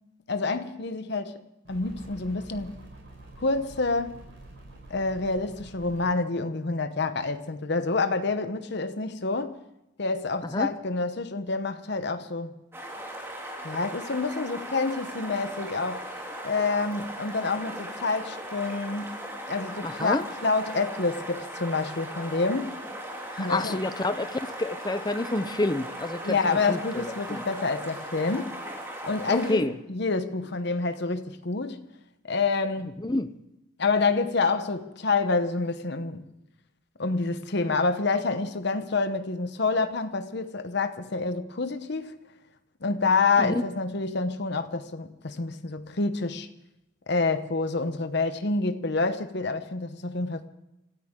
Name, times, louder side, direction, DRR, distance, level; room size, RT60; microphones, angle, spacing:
voice 1, 0.3-1.4 1.7-2.7 3.4-4.2 4.9-9.5 10.0-12.5 13.6-19.1 19.5-22.8 23.4-23.8 26.2-28.5 29.0-31.8 32.2-32.9 33.8-36.2 37.0-42.1 42.8-46.5 47.1-50.5, left 3 dB, 60° left, 0.9 m, -28 dB
sound 1, 1.6-6.0, right 2 dB, 65° right, 5.1 m, -47 dB
sound 2, 12.7-29.5, right 1 dB, 15° right, 3.0 m, -38 dB
voice 2, 19.8-20.3 23.3-26.4 26.7-27.4 29.3-29.8 33.0-33.3 43.4-43.6, left 2 dB, 20° left, 0.6 m, -28 dB
27.5 x 13.5 x 3.7 m
head